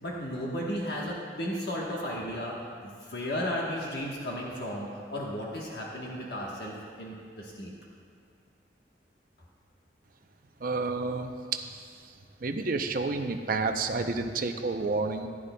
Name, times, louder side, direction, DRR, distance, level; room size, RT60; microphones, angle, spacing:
voice 1, 0.0-2.6 2.8-7.7, equal, 65° left, -3 dB, 1.2 m, -34 dB
voice 2, 10.6-12.1 12.4-15.3, right 3 dB, 50° right, 6 dB, 0.6 m, -30 dB
15.0 x 11.5 x 2.3 m, 2.3 s
head